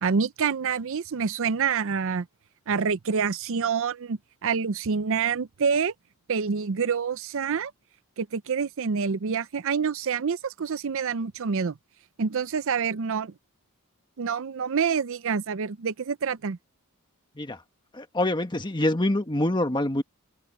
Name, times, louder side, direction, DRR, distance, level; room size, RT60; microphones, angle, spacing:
voice 1, 0.0-2.3 2.7-5.9 6.3-7.7 8.2-11.7 12.2-13.3 14.2-16.6, right 6 dB, 60° right, 0.5 m, -27 dB
voice 2, 17.9-20.0, left 1 dB, 20° left, 1.6 m, -25 dB
open air
head